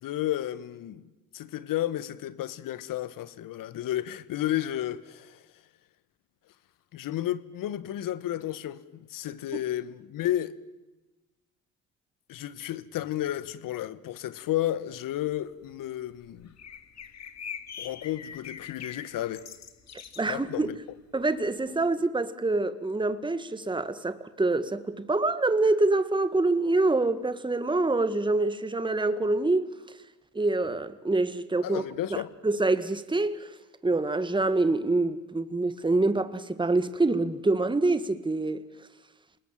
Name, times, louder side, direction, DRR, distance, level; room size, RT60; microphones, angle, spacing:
voice 1, 0.0-1.0 1.3-5.4 6.9-10.5 12.3-16.5 17.8-19.4 20.3-20.7 31.6-32.3, left 13 dB, 65° left, 1.5 m, -32 dB
sound 1, 15.7-15.8 16.2-20.4 20.7-20.8 21.0-21.5, left 7 dB, 45° left, 2.5 m, -43 dB
voice 2, 20.2-20.7 21.1-29.7 30.3-31.8 32.1-33.5 33.8-38.6, right 2 dB, 15° right, 1.7 m, -26 dB
27.5 x 20.5 x 7.5 m
hypercardioid pair, 65°, 36 cm